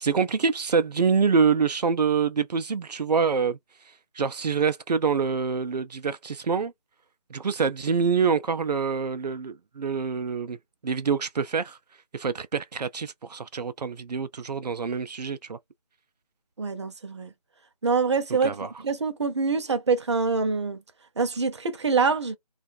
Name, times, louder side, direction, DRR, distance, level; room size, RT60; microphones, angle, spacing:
voice 1, 0.0-3.6 3.8-6.7 7.3-10.6 10.8-11.8 12.1-15.6 18.4-18.7, right 5 dB, 90° right, 0.4 m, -26 dB
voice 2, 16.6-17.3 17.8-18.6 18.8-20.8 21.2-22.4, right 4 dB, 45° right, 0.6 m, -25 dB
2.4 x 2.4 x 2.6 m
figure-of-eight pair, 160°, 20 cm